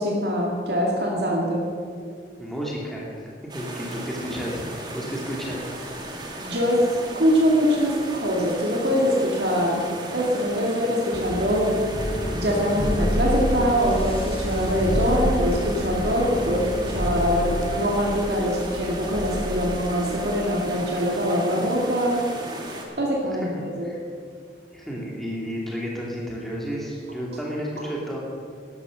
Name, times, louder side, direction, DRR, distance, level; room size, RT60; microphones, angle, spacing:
voice 1, 0.0-1.7 6.4-6.8 7.1-9.8 10.1-11.8 12.3-22.2 23.0-23.9, equal, 70° right, -2 dB, 2.3 m, -23 dB
voice 2, 2.4-5.7 23.8-24.0 24.7-28.2, equal, ahead, -4 dB, 2.3 m, -32 dB
sound 1, 3.5-22.9, right 1 dB, 25° right, 1.8 m, -36 dB
sound 2, 11.1-20.6, equal, 35° left, 1.4 m, -29 dB
13.5 x 11.0 x 6.3 m, 2.2 s
head